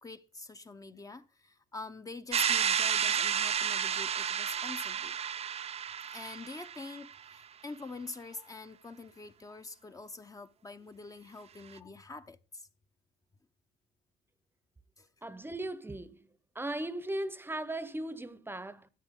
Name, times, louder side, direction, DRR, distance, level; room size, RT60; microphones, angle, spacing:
voice 1, 0.0-5.2 6.1-12.7 15.0-15.1, left 3 dB, 20° left, 0.8 m, -45 dB
sound 1, 2.3-7.1, right 8 dB, 40° right, 0.7 m, -31 dB
voice 2, 15.2-16.3 16.5-18.9, right 1 dB, 15° right, 0.9 m, -37 dB
14.0 x 9.6 x 3.7 m
cardioid pair, 110°, 17 cm